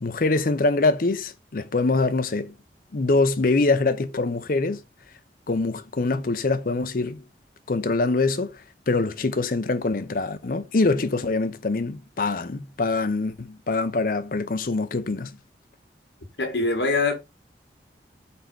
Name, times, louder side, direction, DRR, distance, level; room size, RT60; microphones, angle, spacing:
voice 1, 0.0-2.5 2.9-4.8 5.5-7.2 7.7-15.4, left 3 dB, 50° left, 0.6 m, -24 dB
voice 2, 16.4-17.1, left 3 dB, 75° left, 1.6 m, -23 dB
4.5 x 4.2 x 5.2 m
head